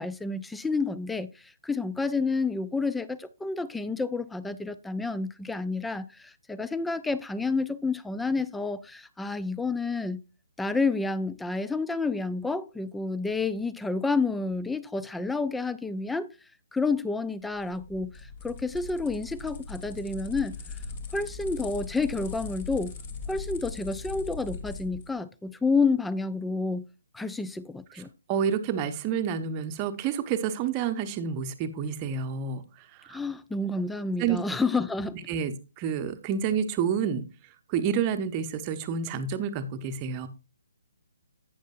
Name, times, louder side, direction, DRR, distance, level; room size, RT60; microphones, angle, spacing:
voice 1, 0.0-10.2 10.6-16.3 16.7-18.1 18.4-20.5 21.1-22.9 23.3-26.8 27.1-28.1 33.1-35.2, left 3 dB, 5° left, 0.4 m, -29 dB
sound 1, 17.5-25.1, left 4 dB, 30° left, 1.3 m, -40 dB
voice 2, 28.3-32.6 33.0-33.2 34.2-34.4 35.3-37.2 37.7-40.3, right 7 dB, 25° right, 0.8 m, -29 dB
11.5 x 8.7 x 2.5 m
figure-of-eight pair, 135°, 0 cm